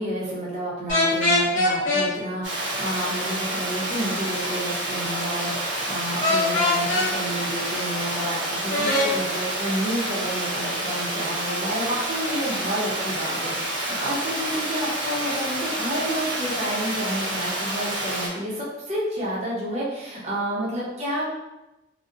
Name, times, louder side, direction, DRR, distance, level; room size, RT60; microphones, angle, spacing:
voice 1, 0.0-21.2, right 1 dB, 35° right, -6 dB, 0.6 m, -30 dB
sound 1, 0.9-2.1 6.2-7.1 8.7-9.1, left 2 dB, 40° left, 0.7 m, -21 dB
Water, 2.4-18.3, right 1 dB, 80° right, 0.7 m, -28 dB
2.6 x 2.1 x 2.4 m, 1.0 s
head